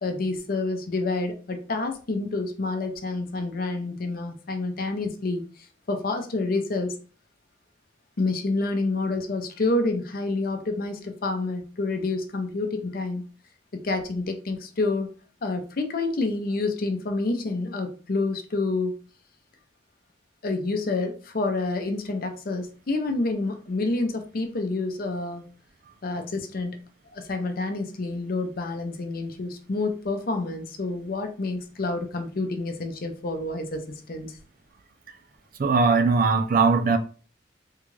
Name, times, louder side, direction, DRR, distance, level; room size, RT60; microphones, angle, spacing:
voice 1, 0.0-5.5 5.9-7.0 8.2-13.2 13.7-15.1 15.4-19.0 20.4-25.5 26.0-26.8 27.1-33.8 34.1-34.4, left 3 dB, 50° left, 0.6 m, -28 dB
voice 2, 35.6-37.0, right 4 dB, 50° right, 0.4 m, -20 dB
3.6 x 2.3 x 3.1 m
head